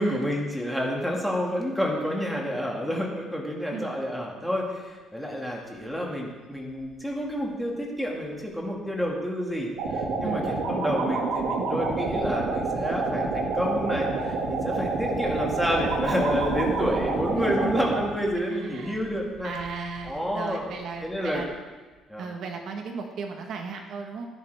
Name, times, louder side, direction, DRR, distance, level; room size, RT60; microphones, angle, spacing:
voice 1, 0.0-19.5 20.0-20.7 21.0-21.4 22.1-22.3, equal, ahead, -2 dB, 1.9 m, -29 dB
Wind, 4.8-4.9 5.3-5.4 5.6-9.2 9.5-21.7 21.9-22.0, right 3 dB, 40° right, 1.9 m, -46 dB
sound 1, 9.8-18.0, right 3 dB, 80° right, 2.0 m, -28 dB
voice 2, 17.4-17.7 18.5-19.1 19.4-21.5 22.2-24.3, right 5 dB, 55° right, 3 dB, 1.2 m, -35 dB
15.5 x 10.0 x 3.5 m, 1.3 s
cardioid pair, 155°, 0 cm